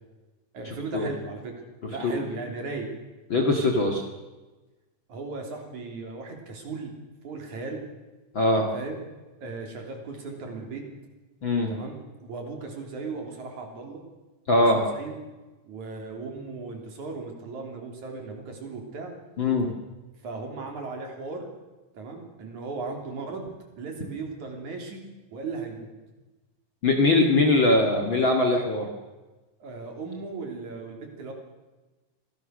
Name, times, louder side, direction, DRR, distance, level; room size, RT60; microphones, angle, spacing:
voice 1, 0.5-1.6 1.8-2.9 5.1-6.9 7.2-7.8 8.7-9.0 9.4-10.8 11.7-14.0 14.7-15.2 15.7-19.1 20.2-21.5 21.9-23.5 23.8-25.0 25.3-25.9 29.6-31.3, right 4 dB, 55° right, 2 dB, 4.5 m, -36 dB
voice 2, 3.3-4.0 8.3-8.7 11.4-11.7 14.5-14.8 19.4-19.7 26.8-28.9, left 2 dB, 40° left, 2 dB, 2.2 m, -21 dB
25.5 x 18.0 x 6.5 m, 1.2 s
omnidirectional pair, 4.2 m